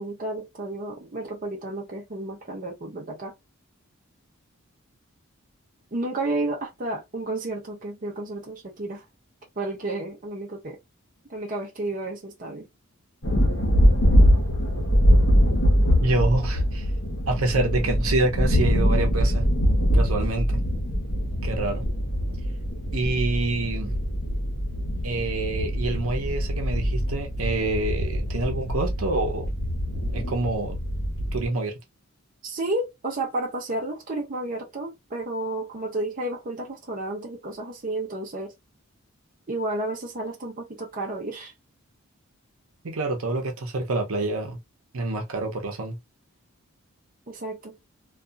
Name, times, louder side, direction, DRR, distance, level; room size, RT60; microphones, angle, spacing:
voice 1, 0.0-3.3 5.9-9.0 9.6-10.8 11.3-12.7 32.4-38.5 39.5-41.5 47.3-47.8, right 2 dB, 40° right, 0.6 m, -31 dB
sound 1, 13.2-31.5, equal, 55° left, 0.9 m, -23 dB
voice 2, 16.0-16.9 17.3-19.5 19.9-20.6 21.4-21.8 22.9-23.9 25.0-29.5 30.1-30.8 31.3-31.7 42.8-44.6 44.9-46.0, right 2 dB, 80° right, 0.8 m, -27 dB
2.7 x 2.4 x 2.4 m
head